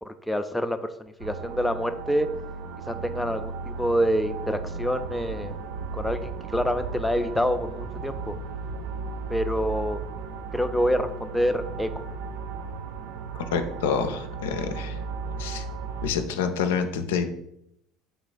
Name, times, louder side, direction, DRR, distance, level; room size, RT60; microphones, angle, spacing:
voice 1, 0.0-2.3 2.9-5.5 5.9-8.3 9.3-10.0 10.5-12.0, equal, 5° left, 8 dB, 0.3 m, -27 dB
sound 1, 1.2-16.1, right 4 dB, 75° right, 0.3 m, -35 dB
voice 2, 13.3-15.0 15.4-15.6 16.0-17.2, left 6 dB, 80° left, 7 dB, 0.3 m, -27 dB
3.8 x 2.4 x 3.9 m, 0.77 s
hypercardioid pair, 70°, 0 cm